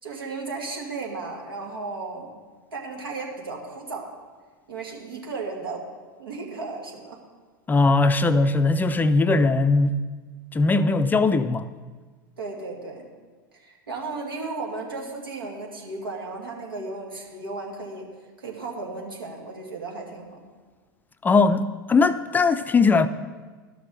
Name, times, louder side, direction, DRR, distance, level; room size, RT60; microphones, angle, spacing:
voice 1, 0.0-2.3 2.7-4.1 4.7-5.8 6.2-7.2 12.4-13.1 13.5-18.1 18.4-20.4, right 3 dB, 85° right, 2.2 m, -35 dB
voice 2, 7.7-10.1 10.5-11.7 21.2-23.1, left 3 dB, 15° left, 0.4 m, -20 dB
12.5 x 6.1 x 6.4 m
hypercardioid pair, 90°, 11 cm